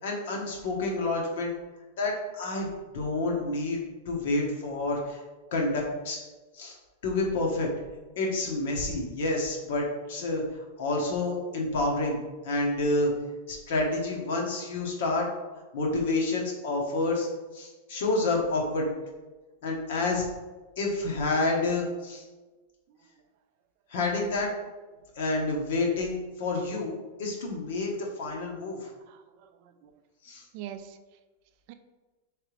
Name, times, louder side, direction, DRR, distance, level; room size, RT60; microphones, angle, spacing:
voice 1, 0.0-1.5 2.0-3.8 4.1-5.2 5.5-6.2 6.5-6.7 7.0-7.7 8.2-10.4 10.8-12.2 12.4-13.1 13.5-15.3 15.7-17.3 17.5-18.9 19.6-20.3 20.8-22.2 23.9-24.5 25.2-26.9 27.2-28.9 30.2-30.4, left 2 dB, 70° left, -1 dB, 1.0 m, -28 dB
voice 2, 29.1-30.0 30.5-31.0 31.7-31.8, right 10 dB, 45° right, 9 dB, 0.3 m, -44 dB
3.9 x 3.2 x 3.1 m, 1.2 s
supercardioid pair, 160°, 0 cm